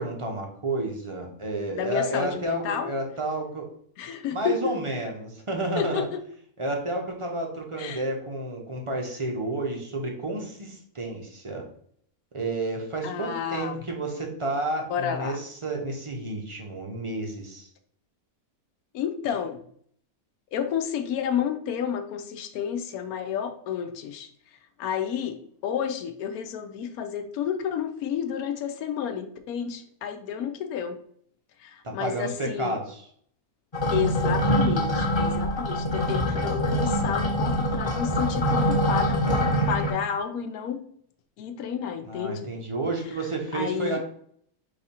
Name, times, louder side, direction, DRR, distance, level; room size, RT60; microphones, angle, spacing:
voice 1, 0.0-3.7 4.3-6.1 6.6-11.6 12.3-17.7 31.8-33.1 42.0-44.0, right 2 dB, 35° right, 1 dB, 0.5 m, -31 dB
voice 2, 1.7-2.9 4.0-4.8 5.8-6.2 7.8-8.0 13.0-13.8 14.9-15.4 18.9-19.6 20.5-24.3 24.8-25.4 25.6-31.0 31.6-32.8 33.9-40.8 41.4-42.5 43.5-44.0, left 8 dB, 80° left, 8 dB, 1.1 m, -30 dB
sound 1, 33.7-39.9, equal, 25° left, 0.6 m, -24 dB
4.8 x 2.4 x 4.2 m, 0.63 s
omnidirectional pair, 1.5 m